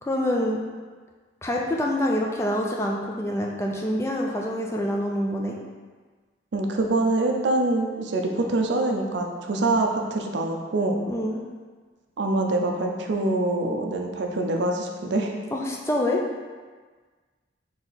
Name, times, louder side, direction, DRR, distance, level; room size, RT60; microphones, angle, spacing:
voice 1, 0.0-0.6 1.4-5.6 11.1-11.4 15.5-16.2, left 1 dB, 15° left, -1 dB, 0.4 m, -26 dB
voice 2, 6.5-11.0 12.2-15.3, right 2 dB, 70° right, 2 dB, 0.5 m, -25 dB
4.1 x 2.9 x 4.0 m, 1.4 s
head